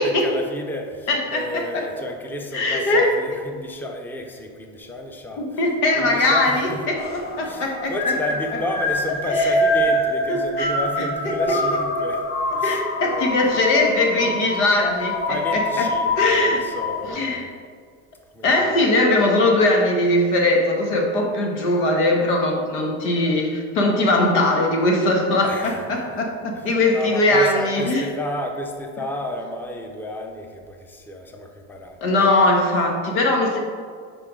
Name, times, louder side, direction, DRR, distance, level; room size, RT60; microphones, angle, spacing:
voice 1, 0.0-5.6 5.9-6.9 7.4-12.3 12.5-13.7 15.3-17.4 18.3-18.8 25.4-26.2 26.5-32.0, left 1 dB, 5° left, 3 dB, 0.7 m, -32 dB
voice 2, 1.1-1.9 2.5-3.4 5.4-7.0 7.4-7.9 9.4-9.6 10.3-10.7 11.0-11.6 12.6-15.9 16.2-16.6 17.0-17.5 18.4-28.0 32.0-33.6, left 2 dB, 90° left, 1 dB, 1.6 m, -20 dB
sound 1, 7.0-17.1, left 1 dB, 30° left, 1.3 m, -25 dB
9.9 x 4.8 x 3.8 m, 2.1 s
supercardioid pair, 125°, 34 cm